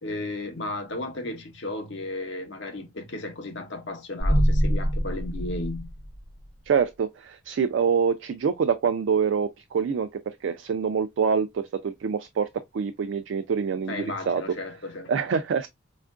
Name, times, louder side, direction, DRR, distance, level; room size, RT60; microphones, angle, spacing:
voice 1, 0.0-5.9 13.9-15.1, left 2 dB, 70° left, 0.7 m, -34 dB
sound 1, 4.2-6.5, equal, 30° left, 1.0 m, -24 dB
voice 2, 6.7-12.5 12.7-14.4 15.1-15.7, right 6 dB, 70° right, 0.3 m, -25 dB
4.3 x 2.4 x 2.3 m
head